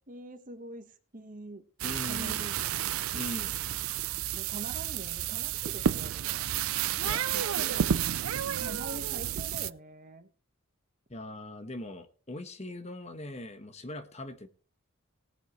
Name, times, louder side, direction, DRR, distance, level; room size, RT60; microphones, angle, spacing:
voice 1, 0.1-1.6 2.0-2.9 4.3-6.5 8.5-10.3, right 1 dB, 40° right, 9 dB, 1.4 m, -44 dB
voice 2, 1.8-2.4 3.1-3.6 7.0-8.1 11.1-14.5, left 1 dB, 30° left, 9 dB, 1.3 m, -41 dB
sound 1, 1.8-9.7, right 9 dB, 80° right, 0.5 m, -31 dB
18.5 x 9.2 x 3.2 m, 0.41 s
head